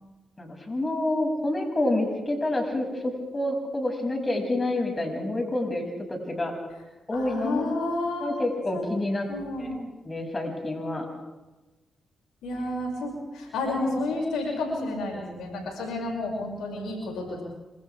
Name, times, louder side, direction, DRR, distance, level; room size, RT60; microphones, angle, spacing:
voice 1, 0.4-6.5 7.1-7.6 8.2-9.3 9.6-9.7 10.1-11.1, left 1 dB, 30° left, 1 dB, 7.2 m, -28 dB
voice 2, 7.1-8.4 8.7-8.9 9.3-9.8 12.4-17.4, left 2 dB, 85° left, -1 dB, 6.9 m, -30 dB
27.5 x 27.0 x 3.7 m, 1.1 s
supercardioid pair, 45°, 0 cm